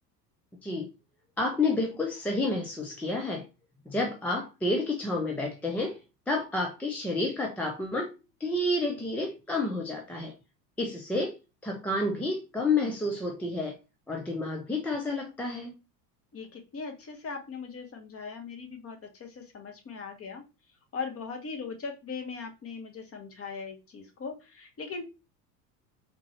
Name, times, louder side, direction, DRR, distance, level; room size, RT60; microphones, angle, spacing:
voice 1, 1.4-3.4 3.9-6.0 6.3-8.1 8.4-10.3 10.8-11.4 11.6-13.8 14.1-15.7, left 2 dB, 5° left, 1 dB, 0.3 m, -30 dB
voice 2, 16.3-20.4 20.9-25.0, left 5 dB, 30° left, 3 dB, 1.2 m, -39 dB
3.6 x 3.1 x 2.9 m, 0.28 s
hypercardioid pair, 75°, 49 cm